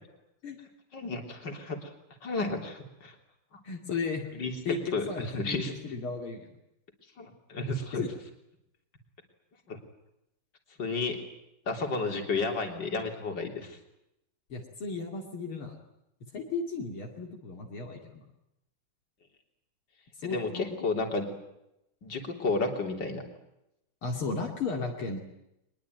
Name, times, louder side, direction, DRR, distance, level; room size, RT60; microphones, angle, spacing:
voice 1, 0.9-1.9 2.2-3.1 4.3-5.9 7.2-8.1 9.7-9.8 10.8-11.2 11.7-13.8 20.2-21.3 22.0-23.2, left 3 dB, 55° left, 4 dB, 4.0 m, -32 dB
voice 2, 3.6-4.2 4.6-6.6 8.0-8.1 14.5-15.7 16.3-18.2 20.2-20.7 24.0-25.2, left 4 dB, 70° left, 0 dB, 3.3 m, -35 dB
23.0 x 21.5 x 9.3 m, 0.84 s
omnidirectional pair, 2.4 m